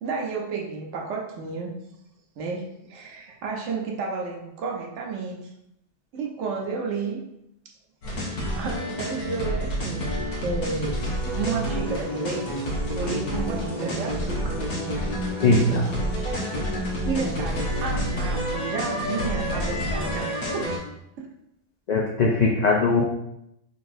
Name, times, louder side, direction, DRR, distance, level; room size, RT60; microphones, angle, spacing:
voice 1, 0.0-1.7 2.4-5.5 6.1-7.2 8.2-11.0 11.3-12.5 13.0-14.7 16.5-16.7 17.0-20.7 21.2-21.3, right 4 dB, 80° right, 0 dB, 1.0 m, -31 dB
sound 1, 8.0-20.8, equal, 85° left, 1.3 m, -28 dB
voice 2, 15.4-15.9 21.9-23.0, left 3 dB, 65° left, -1 dB, 0.4 m, -20 dB
3.9 x 3.3 x 2.5 m, 0.81 s
omnidirectional pair, 1.3 m